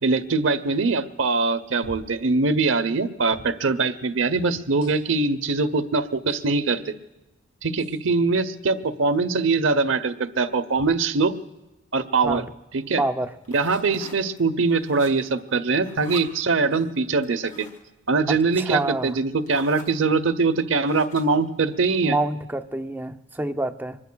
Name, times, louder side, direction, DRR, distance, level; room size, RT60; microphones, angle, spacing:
voice 1, 0.0-6.9 7.6-11.3 11.9-12.4 12.7-13.0 13.5-17.7 18.1-22.2, right 4 dB, 70° right, 11 dB, 0.8 m, -22 dB
sound 1, 1.8-2.2 3.3-3.6 4.8-5.3 6.3-6.4 7.8-8.0 10.7-11.0 12.2-12.5 13.7-14.1 15.2-15.3 16.7-16.9, equal, 85° left, 5.3 m, -46 dB
voice 2, 13.0-13.3 18.3-19.2 22.0-24.0, right 2 dB, 10° right, 8 dB, 0.5 m, -27 dB
sound 2, 13.4-14.4 14.7-15.4 15.7-16.3 17.2-17.8 18.7-18.8 19.1-19.2 19.5-20.0 20.8-21.5, left 3 dB, 35° left, 2.9 m, -43 dB
25.5 x 21.0 x 2.3 m, 1.0 s
head